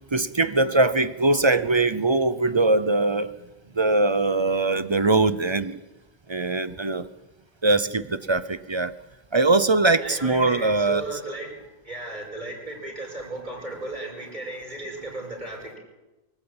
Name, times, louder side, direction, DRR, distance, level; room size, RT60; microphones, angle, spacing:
voice 1, 0.1-3.3 3.8-5.8 6.3-7.1 7.6-8.9 9.3-11.1, right 2 dB, 30° right, 15 dB, 0.7 m, -21 dB
voice 2, 10.0-11.6 11.8-15.8, right 1 dB, 45° right, 1 dB, 5.5 m, -35 dB
23.5 x 14.0 x 8.8 m, 1.1 s
omnidirectional pair, 1.0 m